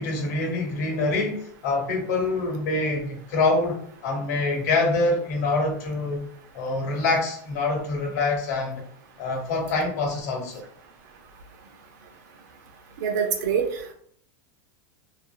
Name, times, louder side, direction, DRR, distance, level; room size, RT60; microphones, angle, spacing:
voice 1, 0.0-6.3 6.5-8.8 9.2-10.6, left 3 dB, 60° left, 2 dB, 0.9 m, -25 dB
voice 2, 13.0-13.9, right 7 dB, 65° right, 4 dB, 0.7 m, -25 dB
2.9 x 2.5 x 2.3 m, 0.63 s
supercardioid pair, 165°, 10 cm